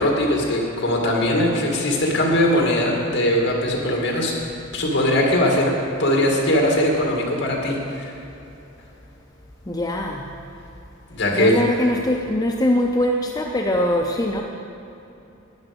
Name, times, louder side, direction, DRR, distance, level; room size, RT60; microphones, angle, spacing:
voice 1, 0.0-4.3 4.7-5.7 6.0-8.1 11.1-11.5, left 1 dB, 55° left, 0 dB, 2.1 m, -20 dB
voice 2, 9.7-10.2 11.3-14.4, left 1 dB, 15° left, 0 dB, 0.5 m, -22 dB
12.0 x 9.3 x 5.2 m, 2.9 s
head